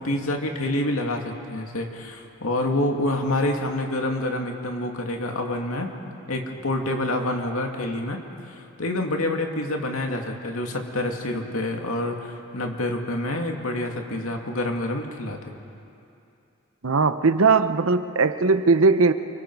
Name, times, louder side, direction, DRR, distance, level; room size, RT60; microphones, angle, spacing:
voice 1, 0.0-5.9 6.3-8.2 8.5-15.4, left 1 dB, 80° left, 2 dB, 2.4 m, -27 dB
voice 2, 16.8-19.1, right 4 dB, 70° right, 11 dB, 0.8 m, -19 dB
28.5 x 24.5 x 4.8 m, 2.6 s
head